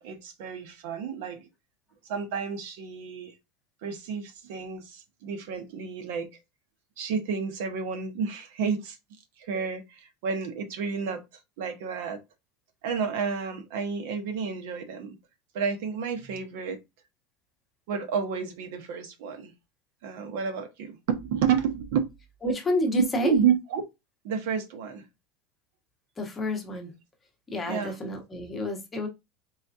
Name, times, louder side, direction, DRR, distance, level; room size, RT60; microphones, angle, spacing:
voice 1, 0.0-1.5 2.0-3.3 3.8-6.3 7.0-9.0 9.4-11.2 11.6-12.2 12.8-15.2 15.5-16.8 17.9-19.5 20.0-22.1 23.2-23.8 24.2-25.0 27.7-28.0, right 6 dB, 65° right, 1.0 m, -30 dB
voice 2, 22.4-23.3 26.2-26.9 27.5-29.1, left 1 dB, 10° left, 0.9 m, -29 dB
4.1 x 3.6 x 2.7 m
supercardioid pair, 180°, 0 cm